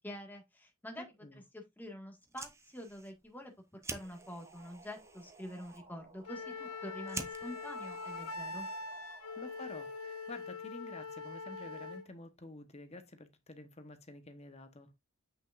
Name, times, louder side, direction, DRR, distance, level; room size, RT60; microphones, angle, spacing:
voice 1, 0.0-1.1 1.5-8.7, equal, 10° left, 1.8 m, -47 dB
voice 2, 1.0-1.4 9.3-14.9, left 2 dB, 30° left, 1.1 m, -50 dB
Fire, 2.1-9.1, right 3 dB, 15° right, 0.7 m, -49 dB
sound 1, 3.8-11.2, right 3 dB, 30° right, 1.7 m, -59 dB
Wind instrument woodwind instrument, 6.3-12.1, left 3 dB, 80° left, 1.1 m, -43 dB
8.0 x 6.2 x 2.5 m
head